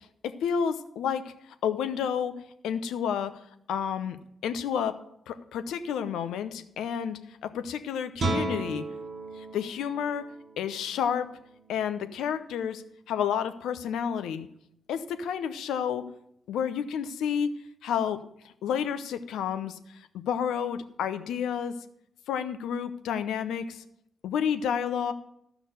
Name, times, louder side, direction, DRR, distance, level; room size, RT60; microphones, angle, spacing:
voice 1, 0.2-1.3 1.6-2.4 2.6-3.4 3.7-4.2 4.4-5.0 5.3-8.9 9.4-10.3 10.6-11.3 11.7-14.5 14.9-16.1 16.5-17.5 17.8-21.8 22.3-23.8 24.2-25.1, left 8 dB, 80° left, 11 dB, 0.7 m, -30 dB
Guitar, 8.1-13.7, right 3 dB, 55° right, 1.6 m, -37 dB
12.5 x 6.0 x 6.6 m, 0.73 s
hypercardioid pair, 40°, 0 cm